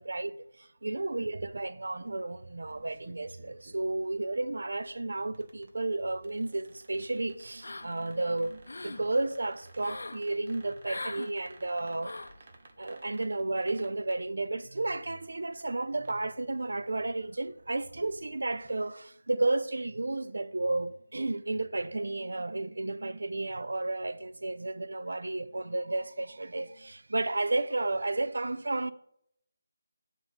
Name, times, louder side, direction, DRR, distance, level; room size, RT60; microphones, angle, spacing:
voice 1, 0.0-12.2 12.8-28.9, right 2 dB, 80° right, 0.4 m, -32 dB
sound 1, 1.9-18.8, right 2 dB, 40° right, 0.9 m, -58 dB
sound 2, 7.6-8.1 8.5-9.0 9.8-10.2 10.8-11.3 12.0-12.4, left 2 dB, 80° left, 0.4 m, -40 dB
7.0 x 3.9 x 5.5 m
figure-of-eight pair, 170°, 0 cm